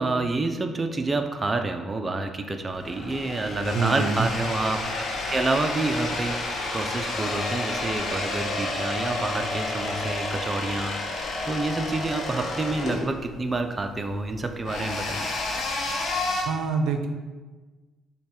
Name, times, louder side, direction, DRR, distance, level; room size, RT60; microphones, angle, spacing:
voice 1, 0.0-15.3, right 2 dB, 25° right, 6 dB, 0.4 m, -28 dB
sound 1, 2.7-16.4, left 2 dB, 65° left, 0.8 m, -31 dB
voice 2, 3.7-4.3 16.5-17.1, right 5 dB, 90° right, 6 dB, 0.4 m, -25 dB
5.4 x 2.2 x 4.4 m, 1.3 s
cardioid pair, 90°, 0 cm